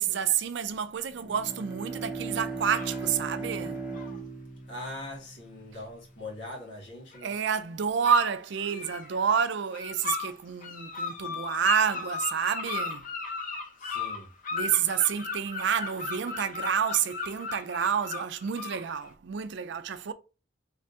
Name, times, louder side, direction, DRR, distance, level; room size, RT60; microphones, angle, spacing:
voice 1, 0.0-3.8 7.2-13.1 14.5-20.1, right 7 dB, 65° right, 0.4 m, -29 dB
Bowed string instrument, 1.1-5.8, right 3 dB, 5° right, 0.8 m, -37 dB
sound 1, 2.6-3.0 3.9-4.2 7.1-7.3 8.0-9.1 9.7-10.3 10.6-19.1, left 4 dB, 45° left, 0.7 m, -36 dB
voice 2, 4.7-7.3 13.8-14.3, left 2 dB, 70° left, 1.9 m, -41 dB
3.4 x 3.3 x 2.7 m
head